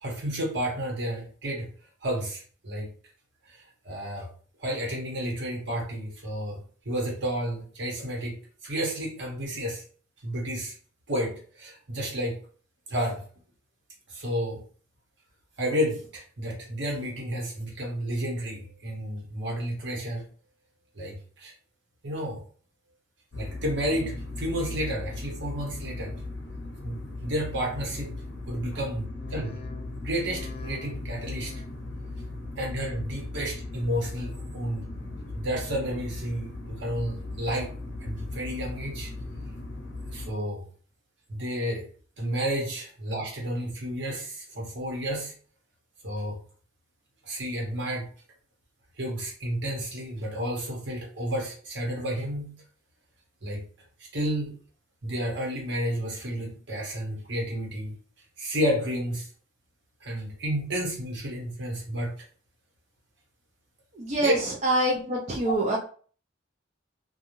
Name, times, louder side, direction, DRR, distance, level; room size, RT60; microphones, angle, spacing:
voice 1, 0.0-1.7 2.0-2.9 3.5-4.3 4.6-6.6 6.8-9.8 10.2-10.7 11.1-12.4 12.9-13.2 14.1-14.6 15.6-20.2 21.0-21.5 22.0-22.4 23.4-26.1 26.8-28.1 28.5-29.5 30.0-31.5 32.6-34.9 35.3-37.7 38.0-39.1 40.1-40.6 41.3-41.9 42.2-45.3 46.0-46.4 47.2-48.1 49.0-52.5 53.4-53.6 54.1-54.5 55.0-58.0 58.4-59.3 60.0-62.1 64.2-64.3, equal, 65° right, -1 dB, 1.0 m, -31 dB
sound 1, 23.3-40.3, left 2 dB, 70° left, 0.6 m, -38 dB
sound 2, 29.0-34.4 34.7-35.3 35.7-36.4 36.8-37.5 37.9-38.6 39.1-39.6 40.2-40.3, left 4 dB, 30° left, 0.3 m, -48 dB
voice 2, 63.9-65.8, right 1 dB, 35° right, -3 dB, 0.5 m, -25 dB
2.6 x 2.2 x 3.0 m, 0.43 s
head